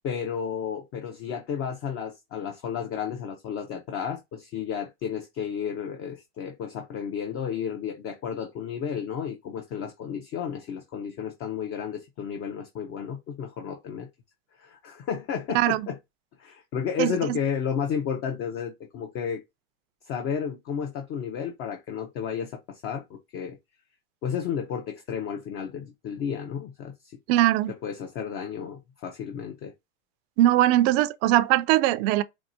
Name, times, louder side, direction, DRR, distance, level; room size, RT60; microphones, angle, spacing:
voice 1, 0.0-14.1 14.6-16.0 16.4-19.4 20.1-23.6 24.2-27.2 27.8-29.7, left 7 dB, 35° left, 0.6 m, -32 dB
voice 2, 15.5-15.9 17.0-17.4 27.3-27.7 30.4-32.2, right 14 dB, 50° right, 0.4 m, -21 dB
4.5 x 2.1 x 2.7 m
supercardioid pair, 115°, 40 cm